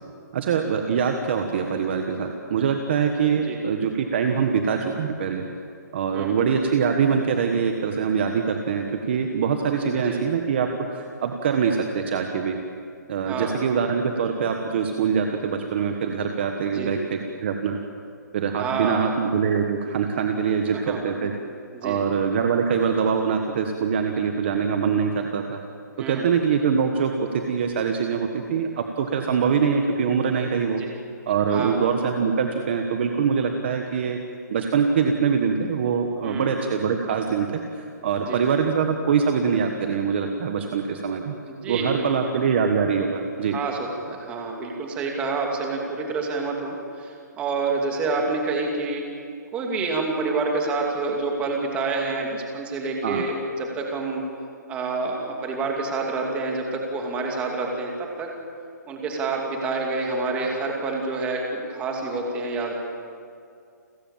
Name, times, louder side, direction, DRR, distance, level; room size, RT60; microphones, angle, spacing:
voice 1, 0.3-5.4 5.9-12.6 13.1-17.8 18.3-21.3 21.8-25.6 26.0-30.8 31.3-34.2 34.5-41.3 41.7-43.6 53.0-53.2, right 6 dB, 35° right, 4 dB, 1.4 m, -24 dB
voice 2, 13.2-13.6 16.7-17.0 18.6-19.2 20.7-21.3 21.7-22.0 26.0-26.3 30.8-31.0 31.5-31.9 36.2-36.5 38.2-38.5 41.4-42.3 43.5-49.1 49.5-54.2 54.7-58.3 58.9-62.7, right 3 dB, 10° right, 1 dB, 2.6 m, -28 dB
30.0 x 15.5 x 7.4 m, 2.3 s
hypercardioid pair, 170°, 10 cm